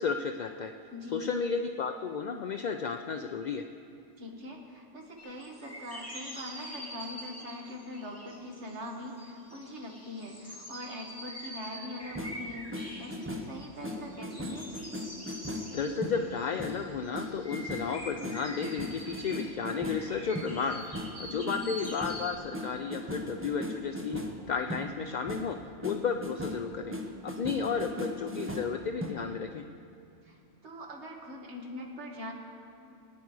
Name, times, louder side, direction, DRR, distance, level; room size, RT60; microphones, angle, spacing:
voice 1, 0.0-0.7 1.1-3.6 15.7-20.8 21.2-25.6 25.8-26.9 27.2-29.6, left 5 dB, 60° left, 6 dB, 0.4 m, -33 dB
voice 2, 0.9-1.3 4.2-14.7 21.3-21.7 27.5-27.9 30.3-30.4 30.6-32.3, left 1 dB, 65° right, 0 dB, 1.9 m, -42 dB
sound 1, 5.2-22.4, equal, 10° left, 1.8 m, -45 dB
sound 2, 12.0-13.6 13.8-25.6 25.8-29.1, left 1 dB, 10° right, 0.8 m, -38 dB
20.0 x 9.5 x 4.7 m, 2.6 s
omnidirectional pair, 1.2 m